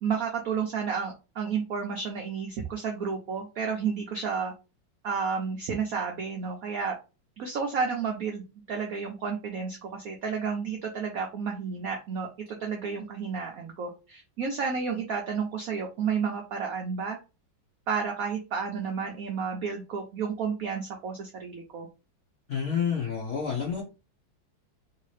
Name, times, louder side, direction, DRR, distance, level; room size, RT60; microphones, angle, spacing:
voice 1, 0.0-4.5 5.0-7.0 7.4-8.4 8.7-17.2 17.9-21.9, right 6 dB, 80° right, 2 dB, 0.7 m, -31 dB
voice 2, 22.5-23.8, left 7 dB, 65° left, -2 dB, 0.7 m, -29 dB
3.2 x 2.8 x 3.1 m, 0.30 s
omnidirectional pair, 2.2 m